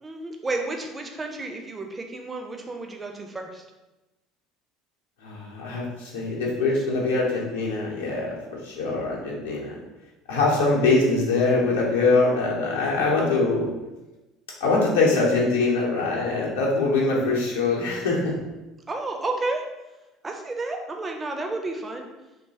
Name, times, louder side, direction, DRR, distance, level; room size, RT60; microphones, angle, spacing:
voice 1, 0.0-3.6 18.9-19.6 20.2-22.1, right 2 dB, 20° right, 3 dB, 0.4 m, -31 dB
voice 2, 5.2-9.8 10.3-13.7 14.6-18.4, left 3 dB, 70° left, -3 dB, 0.6 m, -23 dB
2.9 x 2.2 x 2.7 m, 1.0 s
figure-of-eight pair, 65°, 0 cm